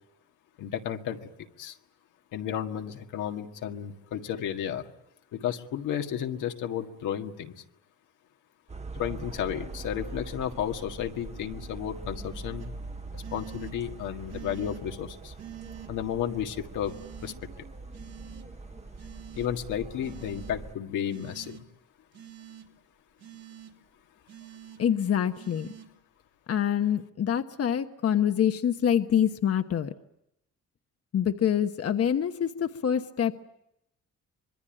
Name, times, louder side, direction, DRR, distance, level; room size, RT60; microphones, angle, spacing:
voice 1, 0.6-1.2 1.6-1.8 2.3-4.9 5.3-7.5 8.9-12.7 13.1-15.3 15.9-16.9 17.2-17.3 19.4-21.6, left 9 dB, 85° left, 4 dB, 1.9 m, -33 dB
sound 1, 8.7-20.7, right 3 dB, 20° right, 1.1 m, -42 dB
sound 2, 12.6-12.7 13.2-13.7 14.3-14.8 15.4-15.9 16.8-17.4 17.9-18.5 19.0-19.5 20.0-20.5 21.1-21.6 22.1-22.7 23.2-23.7 24.3-24.8 25.3-25.9, right 11 dB, 55° right, 3.3 m, -46 dB
voice 2, 24.8-25.7 26.5-29.9 31.1-33.3, left 9 dB, 50° left, 7 dB, 1.2 m, -26 dB
25.5 x 22.0 x 8.8 m, 0.83 s
cardioid pair, 90°, 30 cm